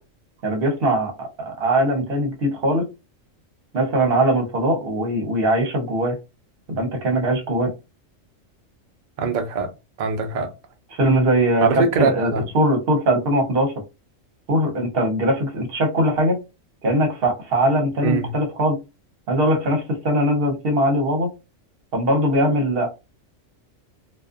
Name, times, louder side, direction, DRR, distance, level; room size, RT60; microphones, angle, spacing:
voice 1, 0.4-2.8 3.7-6.2 6.7-7.7 10.9-13.7 14.5-16.4 16.8-18.8 19.3-21.3 21.9-22.9, right 1 dB, 50° right, 0.9 m, -21 dB
voice 2, 9.2-9.7 10.0-10.5 11.6-12.4 18.0-18.3, right 4 dB, 85° right, 0.4 m, -22 dB
2.4 x 2.4 x 2.4 m
omnidirectional pair, 1.4 m